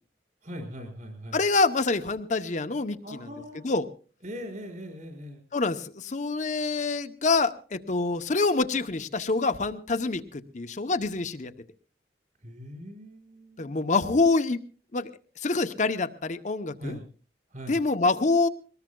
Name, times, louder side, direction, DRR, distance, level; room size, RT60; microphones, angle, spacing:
voice 1, 0.4-1.4 3.0-3.6 4.2-5.4 12.4-13.8 16.8-17.0 17.5-17.8, equal, 45° right, 4 dB, 5.4 m, -40 dB
voice 2, 1.3-3.0 3.6-3.9 5.5-11.5 13.6-14.6 14.9-15.1 15.4-17.0 17.7-18.5, left 3 dB, 40° left, 9 dB, 0.7 m, -26 dB
23.5 x 19.5 x 2.2 m, 0.38 s
head